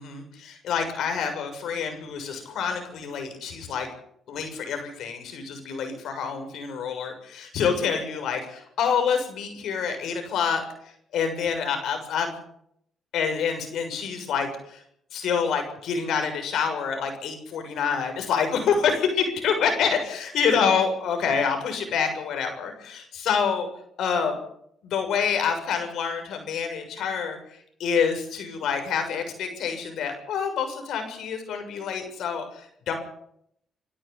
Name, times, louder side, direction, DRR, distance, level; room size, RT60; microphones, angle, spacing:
voice 1, 0.0-3.9 4.3-10.6 11.1-12.3 13.1-14.8 15.1-23.7 24.0-24.4 24.8-27.4 27.8-32.9, left 6 dB, 75° left, 6 dB, 6.9 m, -27 dB
27.5 x 13.0 x 8.4 m, 0.71 s
cardioid pair, 90°, 0 cm